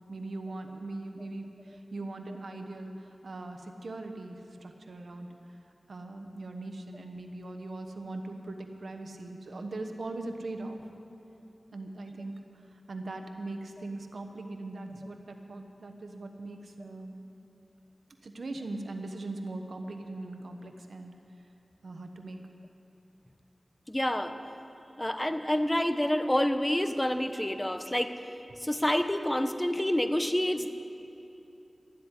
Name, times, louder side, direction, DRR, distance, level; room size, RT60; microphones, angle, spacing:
voice 1, 0.1-5.4 5.9-10.8 11.7-12.3 12.9-17.2 18.2-21.1 21.8-22.4, right 2 dB, 85° right, 5 dB, 1.0 m, -40 dB
voice 2, 23.9-24.3 25.0-28.1 28.6-30.7, left 1 dB, 15° left, 8 dB, 0.8 m, -28 dB
12.0 x 8.1 x 9.8 m, 2.8 s
wide cardioid pair, 65°, 0 cm